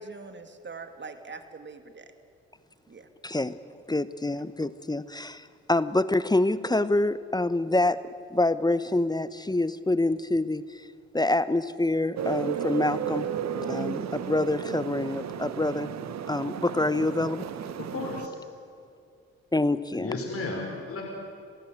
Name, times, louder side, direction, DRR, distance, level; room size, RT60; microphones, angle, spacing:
voice 1, 0.0-2.1 2.9-3.1, right 4 dB, 40° right, 7 dB, 2.6 m, -43 dB
voice 2, 3.2-3.6 3.9-8.0 8.3-10.9 11.1-13.3 13.7-15.9 16.3-17.5 19.5-20.2, left 2 dB, 15° left, 15 dB, 1.0 m, -26 dB
sound 1, 12.2-18.3, right 8 dB, 60° right, 1.3 m, -33 dB
voice 3, 17.8-18.3 19.9-21.0, left 3 dB, 50° left, 0 dB, 5.4 m, -33 dB
26.5 x 16.0 x 9.3 m, 2.4 s
hypercardioid pair, 50°, 30 cm